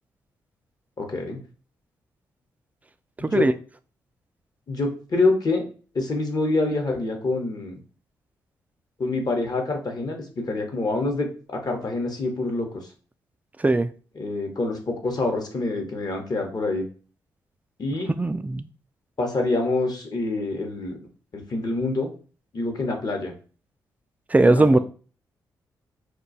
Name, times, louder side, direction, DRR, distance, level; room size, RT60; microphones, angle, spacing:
voice 1, 1.0-1.4 3.2-3.5 4.7-5.6 5.9-7.8 9.0-12.8 14.2-16.9 17.8-18.1 19.2-21.0 21.3-22.1 22.5-23.3 24.4-24.8, left 2 dB, 45° left, 0.9 m, -26 dB
voice 2, 3.2-3.5 13.6-13.9 18.2-18.6 24.3-24.8, right 2 dB, 15° right, 0.3 m, -19 dB
2.3 x 2.3 x 3.9 m
hypercardioid pair, 40°, 9 cm